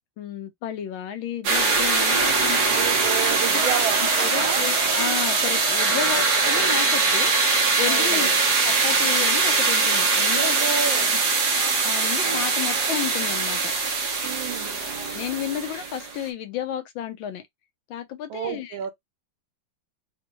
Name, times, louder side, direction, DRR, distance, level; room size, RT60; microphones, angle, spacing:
voice 1, 0.2-2.6 4.2-8.3 8.6-10.6 10.8-10.9 11.5-13.7 14.8-17.4 17.9-18.8, left 10 dB, 80° left, 1.5 m, -32 dB
sound 1, 1.4-16.2, right 4 dB, 60° right, 1.6 m, -22 dB
voice 2, 2.6-4.7 5.9-6.0 7.8-8.3 10.3-11.1 14.2-14.8 18.3-18.9, right 8 dB, 80° right, 1.5 m, -31 dB
4.2 x 2.2 x 3.0 m
omnidirectional pair, 2.1 m